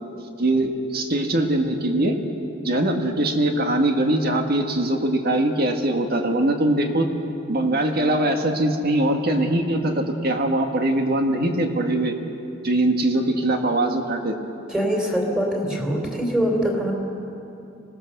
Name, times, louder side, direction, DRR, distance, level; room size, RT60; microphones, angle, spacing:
voice 1, 0.4-2.2 2.6-7.1 7.5-12.1 12.6-14.4, right 1 dB, 50° right, 4 dB, 1.8 m, -22 dB
voice 2, 14.7-16.9, equal, 5° right, 0 dB, 3.5 m, -23 dB
25.0 x 18.5 x 6.8 m, 2.8 s
head